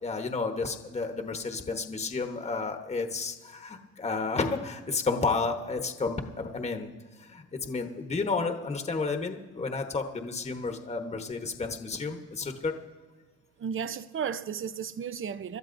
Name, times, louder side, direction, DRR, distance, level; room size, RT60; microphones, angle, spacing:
voice 1, 0.0-6.9 7.2-12.7, left 4 dB, 20° left, 1.1 m, -31 dB
voice 2, 13.6-15.6, right 7 dB, 45° right, 0.7 m, -34 dB
26.0 x 12.0 x 2.6 m
cardioid pair, 90°, 30 cm